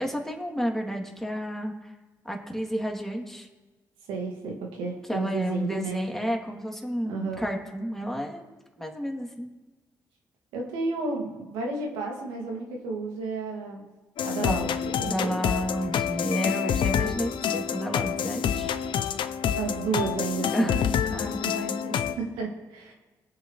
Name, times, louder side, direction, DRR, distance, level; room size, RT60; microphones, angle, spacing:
voice 1, 0.0-1.9 2.2-3.5 5.1-9.5 14.4-14.6 15.0-18.7 20.4-20.8 21.1-22.0, equal, 5° left, 1 dB, 3.0 m, -31 dB
voice 2, 4.1-6.0 7.0-7.4 10.5-13.9 14.2-14.7 15.0-15.4 19.6-20.8 22.2-22.9, right 3 dB, 85° right, 0 dB, 2.5 m, -32 dB
sound 1, 14.2-22.1, left 8 dB, 70° left, 0.8 m, -28 dB
21.5 x 7.7 x 3.3 m, 1.2 s
hypercardioid pair, 50°, 9 cm